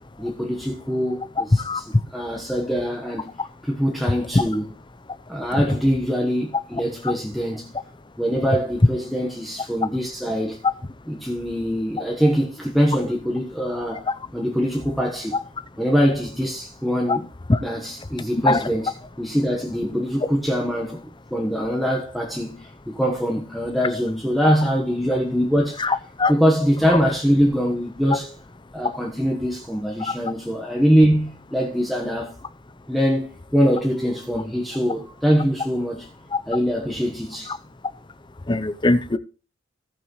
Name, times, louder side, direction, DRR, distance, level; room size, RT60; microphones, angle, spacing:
voice 1, 0.2-3.3 3.6-4.7 5.3-7.7 8.2-10.6 11.1-15.4 15.8-17.3 17.6-25.9 26.3-28.3 28.7-32.4 32.9-36.1 36.5-37.5, equal, ahead, 1.2 m, -23 dB
voice 2, 25.8-26.3 26.9-27.0 30.0-30.1 38.5-39.2, left 3 dB, 20° left, 0.6 m, -21 dB
18.0 x 6.0 x 3.1 m
head